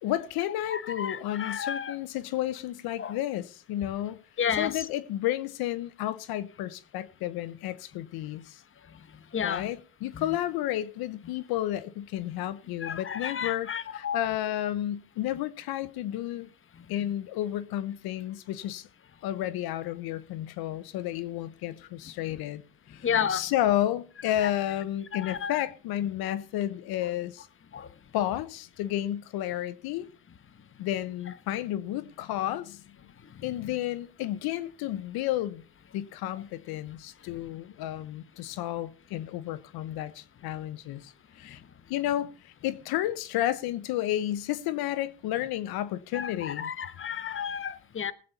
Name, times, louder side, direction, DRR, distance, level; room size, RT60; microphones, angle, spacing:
voice 1, 0.0-4.2 4.5-8.6 9.4-16.5 16.9-18.9 19.2-22.6 22.9-27.5 28.1-30.1 30.8-32.8 33.4-35.6 35.9-41.6 41.9-46.7, left 13 dB, 80° left, 1.0 m, -32 dB
voice 2, 0.7-1.9 3.0-3.1 4.4-4.7 9.3-9.6 10.1-10.2 12.8-14.2 23.0-23.4 24.4-24.5 25.1-25.5 27.0-27.1 27.7-27.9 46.1-48.1, left 8 dB, 35° left, 1.2 m, -31 dB
19.0 x 8.7 x 4.2 m
cardioid pair, 90°, 37 cm